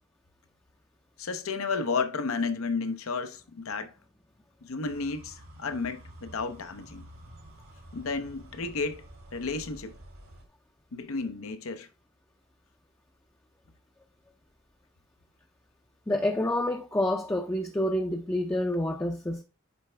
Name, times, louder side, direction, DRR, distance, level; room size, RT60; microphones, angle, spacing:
voice 1, 1.2-3.9 4.6-7.0 7.9-9.0 9.3-9.9 10.9-11.9, left 4 dB, 85° left, 0.7 m, -32 dB
sound 1, 4.8-10.5, right 1 dB, 70° right, 1.6 m, -50 dB
voice 2, 16.1-19.4, left 1 dB, 10° left, 0.5 m, -28 dB
9.4 x 3.3 x 3.3 m
head